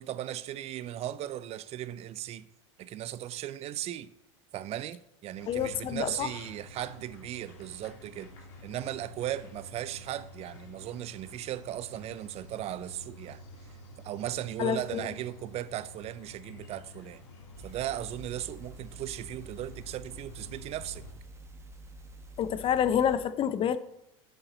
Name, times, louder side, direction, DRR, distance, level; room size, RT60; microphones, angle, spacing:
voice 1, 0.0-2.4 2.8-4.1 4.5-8.3 8.6-13.4 14.0-17.2 17.6-21.0, right 12 dB, 40° right, 0.5 m, -37 dB
sound 1, 5.3-21.1, left 1 dB, 70° left, 2.9 m, -50 dB
voice 2, 5.5-6.3 14.6-15.1 22.4-23.8, left 9 dB, 35° left, 0.6 m, -28 dB
sound 2, 17.5-23.2, right 1 dB, 15° right, 1.1 m, -48 dB
8.7 x 6.9 x 3.9 m
hypercardioid pair, 90°, 16 cm